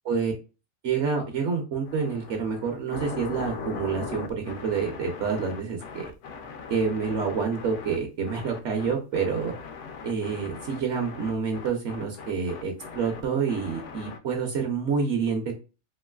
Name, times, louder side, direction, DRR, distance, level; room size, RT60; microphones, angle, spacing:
voice 1, 0.8-6.1 6.7-9.5 10.0-15.5, right 5 dB, 65° right, 3 dB, 0.9 m, -28 dB
sound 1, 1.9-8.0 8.2-14.2, left 5 dB, 70° left, 0.8 m, -40 dB
3.0 x 2.8 x 2.2 m, 0.32 s
omnidirectional pair, 1.4 m